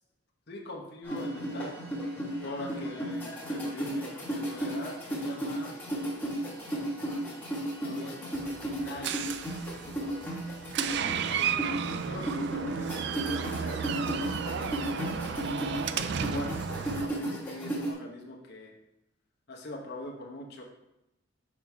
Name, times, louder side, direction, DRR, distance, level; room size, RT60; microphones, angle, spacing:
voice 1, 0.5-1.7 2.4-5.7 7.8-9.2 9.9-10.2 11.3-11.5 12.0-15.2 16.3-18.7 19.5-20.6, left 1 dB, 55° left, -1 dB, 1.0 m, -42 dB
sound 1, 1.0-17.9, right 1 dB, 10° left, 1.6 m, -34 dB
Door, 8.3-17.1, right 7 dB, 55° right, 0.3 m, -33 dB
6.0 x 6.0 x 3.5 m, 0.90 s
head